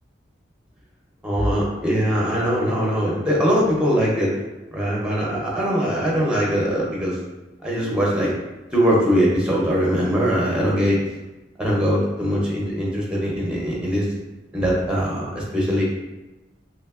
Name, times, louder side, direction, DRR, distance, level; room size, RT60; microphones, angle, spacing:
voice 1, 1.2-4.3 4.7-7.2 7.6-8.3 8.7-11.0 11.6-14.1 14.5-15.8, equal, 5° right, -4 dB, 0.5 m, -21 dB
2.9 x 2.7 x 2.3 m, 1.1 s
head